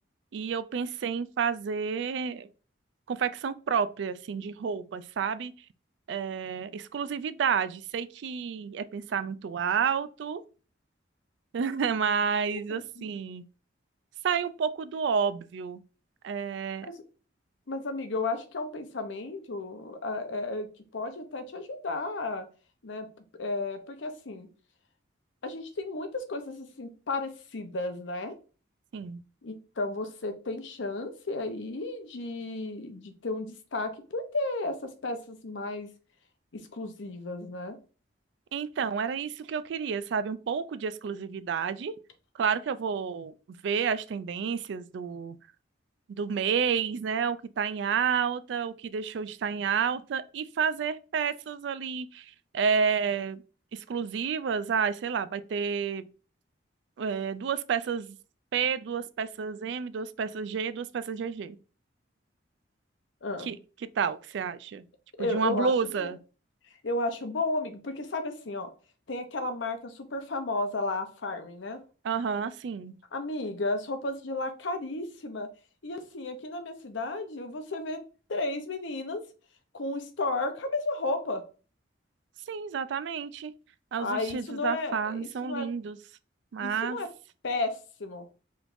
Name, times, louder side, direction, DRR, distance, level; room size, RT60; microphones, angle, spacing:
voice 1, 0.3-2.5 3.1-5.5 6.1-10.4 11.5-13.4 14.2-15.8 16.2-16.9 28.9-29.2 38.5-41.9 42.3-43.3 43.6-45.4 46.1-53.4 53.7-56.1 57.0-58.2 58.5-61.6 63.4-63.6 64.0-64.8 65.2-66.2 72.0-73.0 82.5-83.5 83.9-86.0 86.5-87.0, right 6 dB, 70° right, 0.3 m, -30 dB
voice 2, 12.7-13.1 16.8-17.0 17.7-22.5 22.8-23.1 23.3-24.5 25.4-28.3 29.4-35.9 36.5-37.8 63.2-63.5 65.2-66.1 66.8-68.7 69.1-71.8 73.1-75.5 75.8-78.0 78.3-79.2 79.7-81.4 84.0-85.7 86.6-87.1 87.4-88.3, left 2 dB, 80° left, 0.7 m, -33 dB
5.0 x 3.1 x 2.6 m
head